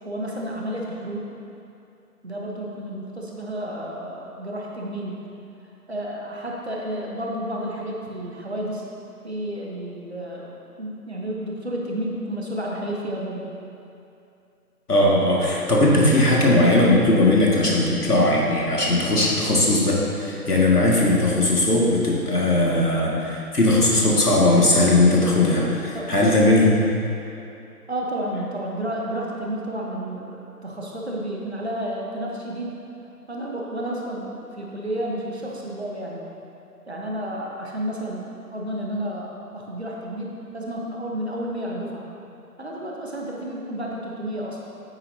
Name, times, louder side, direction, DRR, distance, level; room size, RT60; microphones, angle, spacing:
voice 1, 0.0-1.3 2.2-5.2 5.9-8.9 9.2-10.5 10.8-13.5 25.9-26.1 27.9-32.8 33.3-36.2 36.9-42.0 42.6-44.6, right 1 dB, 40° right, -3 dB, 1.2 m, -31 dB
voice 2, 14.9-26.8, left 1 dB, 75° left, -3 dB, 2.1 m, -19 dB
9.5 x 9.3 x 2.8 m, 2.7 s
figure-of-eight pair, 160°, 47 cm